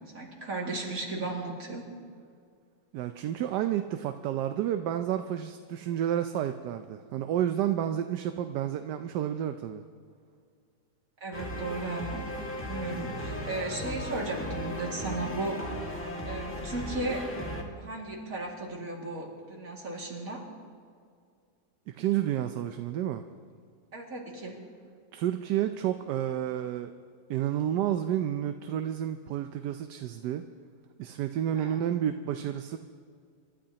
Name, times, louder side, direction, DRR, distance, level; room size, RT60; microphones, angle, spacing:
voice 1, 0.1-1.9 11.2-12.2 12.7-15.6 16.3-17.2 17.8-20.4 23.9-24.6 31.6-31.8, right 2 dB, 55° right, -2 dB, 2.7 m, -35 dB
voice 2, 2.9-9.8 21.9-23.2 25.1-26.9 27.3-30.4 31.0-32.8, right 11 dB, 80° right, 8 dB, 1.2 m, -30 dB
sound 1, 11.3-17.6, equal, 10° left, 1.8 m, -36 dB
27.5 x 13.0 x 2.9 m, 2.2 s
omnidirectional pair, 1.8 m